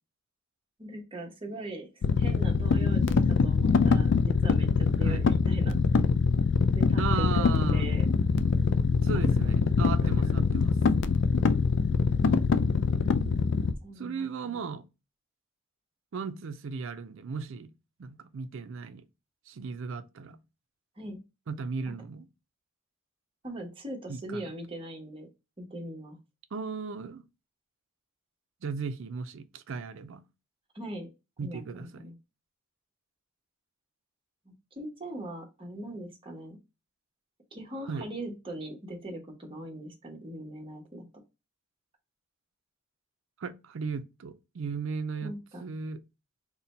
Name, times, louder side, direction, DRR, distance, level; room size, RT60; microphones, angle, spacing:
voice 1, 0.8-1.9 2.2-4.7 5.0-6.1 6.7-8.1 9.1-9.2 10.0-10.5 10.9-11.0 13.8-14.3 21.0-21.2 23.4-25.3 25.6-26.2 30.7-31.1 31.4-32.1 34.4-36.6 37.5-41.0 45.2-45.6, right 1 dB, 25° right, 1.0 m, -40 dB
sound 1, 2.0-13.7, left 5 dB, 60° left, 0.3 m, -24 dB
voice 2, 7.0-7.9 9.0-10.8 14.0-14.8 16.1-17.7 18.0-19.0 19.5-20.4 21.5-22.2 24.1-24.6 26.5-27.2 28.6-30.2 31.4-32.1 37.9-38.1 43.4-45.3 45.6-46.0, right 5 dB, 65° right, 0.4 m, -36 dB
4.1 x 2.2 x 4.1 m
head